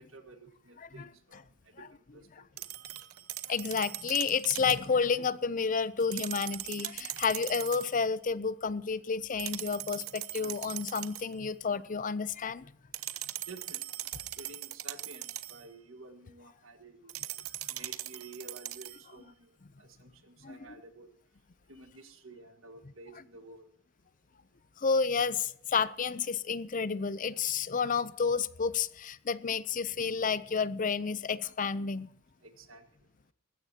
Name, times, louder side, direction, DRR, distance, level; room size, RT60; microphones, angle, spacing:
voice 1, 0.0-1.8 2.1-2.3 2.6-2.7 13.5-13.8 14.4-17.1 17.7-19.5 19.8-21.1 21.7-23.7 32.4-32.8, right 3 dB, 65° right, 1.7 m, -51 dB
sound 1, 2.6-4.9 6.0-7.9 9.4-11.3 12.9-15.7 17.1-19.1, right 14 dB, 90° right, 0.8 m, -40 dB
voice 2, 3.5-12.7 20.4-20.6 24.8-32.1, left 5 dB, 40° left, 0.5 m, -30 dB
20.0 x 16.0 x 2.9 m
head